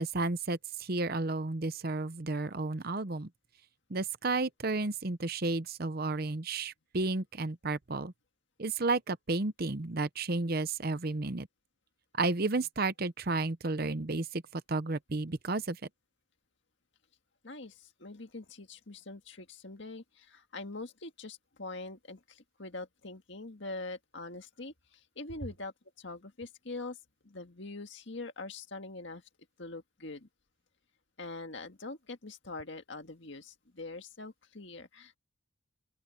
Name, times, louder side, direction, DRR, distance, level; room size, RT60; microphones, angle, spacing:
voice 1, 0.0-3.3 3.9-8.1 8.6-11.5 12.2-15.8, right 3 dB, 45° right, 0.8 m, -32 dB
voice 2, 17.4-27.0 27.2-29.2 29.6-30.3 31.2-35.2, left 2 dB, 60° left, 1.9 m, -44 dB
open air
head